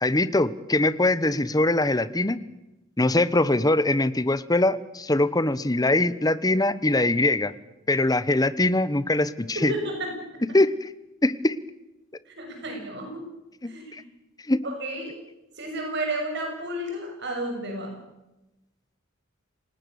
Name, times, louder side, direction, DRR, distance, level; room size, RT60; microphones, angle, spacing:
voice 1, 0.0-2.4 3.0-7.5 7.9-9.7 10.5-10.9 11.2-11.5 13.6-13.7 14.5-14.6, left 2 dB, 20° left, 15 dB, 1.1 m, -22 dB
voice 2, 9.5-10.6 12.3-13.2 13.6-14.0 14.6-15.1 15.6-18.0, right 1 dB, 55° right, 2 dB, 7.3 m, -32 dB
28.0 x 19.0 x 7.1 m, 0.96 s
head